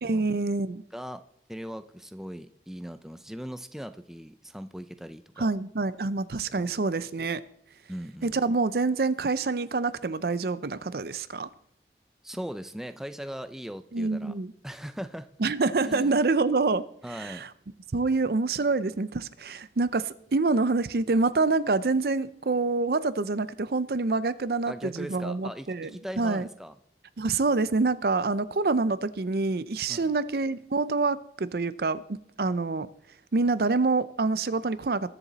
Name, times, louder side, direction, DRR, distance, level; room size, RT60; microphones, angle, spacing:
voice 1, 0.0-0.8 5.4-7.4 8.2-11.5 13.9-14.5 15.4-16.8 17.1-17.5 17.9-25.9 26.2-26.5 27.2-32.9 33.3-35.1, right 3 dB, 60° right, 0.5 m, -26 dB
voice 2, 0.9-1.2 1.5-5.5 6.5-6.8 7.9-8.4 12.2-14.3 14.6-15.3 15.8-16.2 17.0-17.5 24.7-26.8 29.9-30.1, equal, ahead, 0.4 m, -39 dB
20.5 x 7.0 x 4.0 m
head